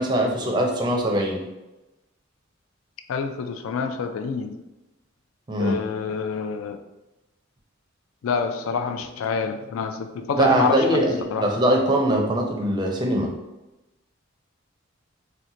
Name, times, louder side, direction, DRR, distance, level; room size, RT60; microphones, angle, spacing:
voice 1, 0.0-1.4 5.5-5.8 10.4-13.3, right 1 dB, 20° right, 0 dB, 0.4 m, -22 dB
voice 2, 3.1-4.6 5.6-6.8 8.2-11.0 11.3-11.5, left 5 dB, 80° left, 7 dB, 0.3 m, -27 dB
2.7 x 2.1 x 3.7 m, 1.0 s
head